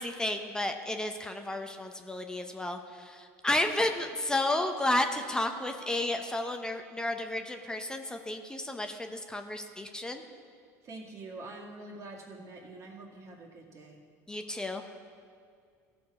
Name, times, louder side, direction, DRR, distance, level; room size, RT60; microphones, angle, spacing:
voice 1, 0.0-10.2 14.3-14.8, left 1 dB, 10° left, 5 dB, 0.7 m, -32 dB
voice 2, 10.8-14.0, right 2 dB, 40° right, 0 dB, 2.0 m, -45 dB
15.0 x 6.1 x 4.8 m, 2.2 s
supercardioid pair, 100°, 8 cm